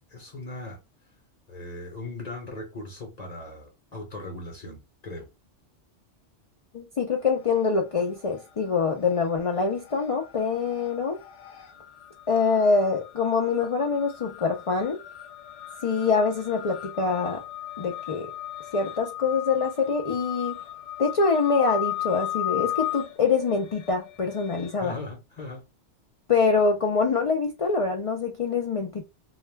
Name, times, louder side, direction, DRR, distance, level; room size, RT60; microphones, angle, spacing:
voice 1, 0.1-0.8 1.5-5.3 24.8-25.6, left 2 dB, 40° left, 0.8 m, -38 dB
voice 2, 6.7-11.2 12.3-15.0 15.8-17.4 17.8-18.3 18.7-20.6 21.0-25.0 26.3-29.0, left 4 dB, 55° left, 0.3 m, -25 dB
sound 1, 7.2-7.8 8.1-24.7, left 14 dB, 85° left, 0.9 m, -37 dB
2.3 x 2.2 x 3.2 m
omnidirectional pair, 1.2 m